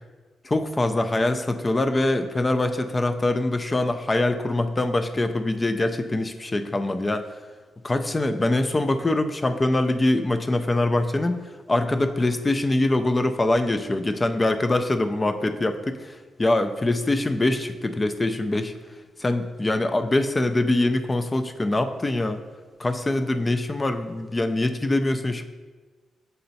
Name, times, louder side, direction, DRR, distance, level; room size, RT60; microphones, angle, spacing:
voice 1, 0.4-7.3 7.8-11.4 11.7-18.7 19.2-22.4 22.8-25.4, left 2 dB, 20° left, 8 dB, 0.4 m, -23 dB
6.8 x 4.2 x 4.1 m, 1.3 s
cardioid pair, 110°, 0 cm